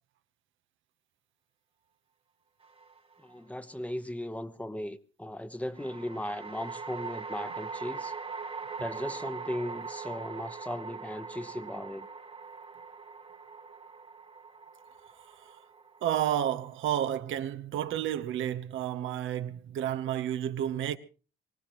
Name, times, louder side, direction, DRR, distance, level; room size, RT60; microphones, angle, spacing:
sound 1, 2.6-3.3 5.8-17.1, right 5 dB, 30° right, 1.3 m, -42 dB
voice 1, 3.2-8.1 8.8-12.1, left 1 dB, 5° left, 1.1 m, -37 dB
voice 2, 16.0-21.0, right 11 dB, 80° right, 1.0 m, -31 dB
24.0 x 17.5 x 3.1 m
cardioid pair, 90°, 20 cm